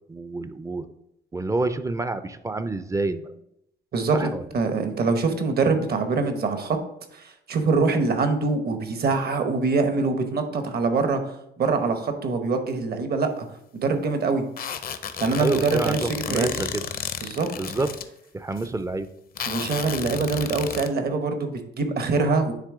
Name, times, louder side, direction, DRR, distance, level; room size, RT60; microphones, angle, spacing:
voice 1, 0.1-0.9 1.3-3.3 4.1-4.5 15.4-16.8 17.6-17.9 18.3-19.1, right 2 dB, 15° right, 11 dB, 0.4 m, -28 dB
voice 2, 3.9-6.8 7.1-13.4 13.7-14.4 15.2-16.0 16.3-16.7 17.2-17.5 19.5-22.5, right 4 dB, 50° right, 7 dB, 1.0 m, -24 dB
sound 1, 14.6-18.0 18.5-18.7 19.4-20.9, left 7 dB, 45° left, 0.5 m, -32 dB
9.6 x 3.3 x 3.6 m, 0.78 s
cardioid pair, 90°, 20 cm